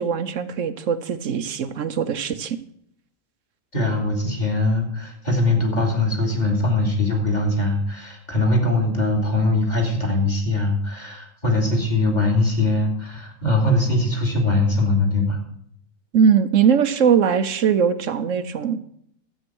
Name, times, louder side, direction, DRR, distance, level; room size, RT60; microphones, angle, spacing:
voice 1, 0.0-2.6 16.1-18.8, right 7 dB, 65° right, 11 dB, 1.1 m, -20 dB
voice 2, 3.7-15.4, left 2 dB, 30° left, 1 dB, 2.8 m, -21 dB
13.0 x 8.5 x 6.2 m, 0.69 s
omnidirectional pair, 1.5 m